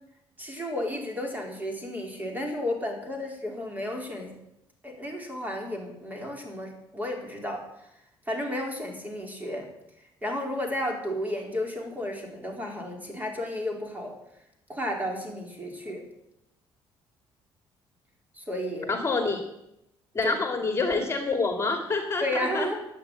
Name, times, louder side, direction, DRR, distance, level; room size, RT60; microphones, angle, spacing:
voice 1, 0.4-4.4 4.8-7.9 8.3-9.7 10.0-14.1 14.7-16.0 18.3-18.9 20.2-20.3 22.2-22.8, left 1 dB, 15° right, 2 dB, 4.4 m, -33 dB
voice 2, 18.9-19.4 20.1-22.7, left 3 dB, 25° left, 5 dB, 2.5 m, -27 dB
13.0 x 8.9 x 9.0 m, 0.84 s
cardioid pair, 95°, 10 cm